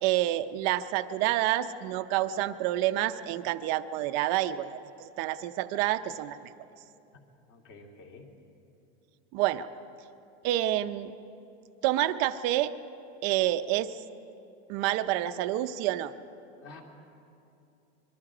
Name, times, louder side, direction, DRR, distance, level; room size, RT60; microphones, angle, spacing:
voice 1, 0.0-6.4 9.3-9.7 10.4-11.1 11.8-12.7 13.2-14.0 14.7-16.1, right 14 dB, 35° right, 10 dB, 0.6 m, -28 dB
voice 2, 7.5-8.3 16.6-16.8, left 3 dB, 45° left, 2 dB, 2.7 m, -49 dB
25.5 x 22.5 x 5.0 m, 2.7 s
supercardioid pair, 170°, 32 cm